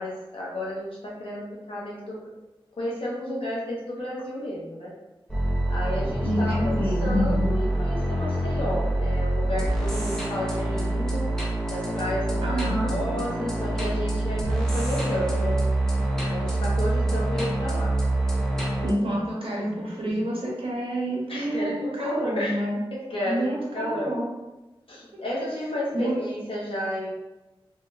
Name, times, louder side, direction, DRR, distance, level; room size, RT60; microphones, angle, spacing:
voice 1, 0.0-2.2 2.8-4.9 5.7-11.3 11.7-15.7 16.2-18.0 19.1-19.2 19.6-20.3 21.3-22.7 22.9-23.5 23.7-24.1 24.9-27.1, left 1 dB, 70° left, -6 dB, 1.0 m, -31 dB
sound 1, 5.3-18.9, right 1 dB, 5° left, 0.8 m, -26 dB
voice 2, 6.2-7.1 12.4-12.9 18.8-22.8 23.3-24.2 25.1-25.2 25.9-26.2, right 1 dB, 75° right, -5 dB, 1.0 m, -28 dB
3.6 x 2.7 x 2.3 m, 1.0 s
wide cardioid pair, 55°, 10 cm